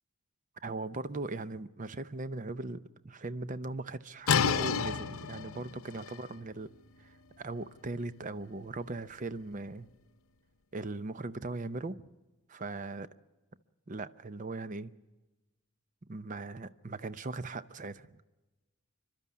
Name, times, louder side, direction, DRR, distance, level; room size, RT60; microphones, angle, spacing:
voice 1, 0.6-6.7 7.0-9.9 10.7-11.9 12.5-13.1 13.9-14.9 16.1-18.2, right 2 dB, 35° right, 14 dB, 0.6 m, -39 dB
sound 1, 4.3-9.9, left 7 dB, 85° left, 0.8 m, -34 dB
27.5 x 12.5 x 8.3 m, 1.1 s
head